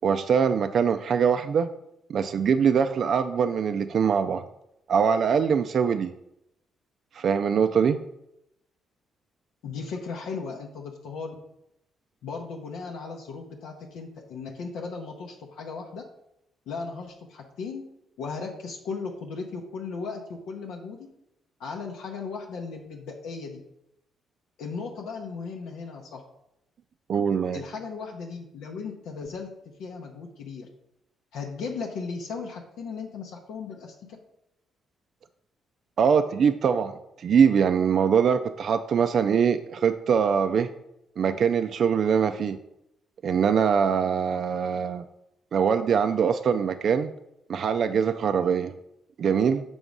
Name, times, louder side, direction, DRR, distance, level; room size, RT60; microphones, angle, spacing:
voice 1, 0.0-1.7 2.1-4.4 4.9-6.1 7.2-8.0 27.1-27.6 36.0-36.9 37.2-40.7 41.2-42.6 43.2-45.0 45.5-47.1 47.5-48.7 49.2-49.6, right 7 dB, 60° right, 8 dB, 0.3 m, -23 dB
voice 2, 9.6-11.4 12.2-16.0 16.7-17.8 18.2-21.1 21.6-23.6 24.6-26.2 27.5-30.7 31.3-33.9, left 4 dB, 85° left, 0 dB, 0.7 m, -36 dB
6.0 x 3.5 x 5.2 m, 0.83 s
cardioid pair, 90°, 0 cm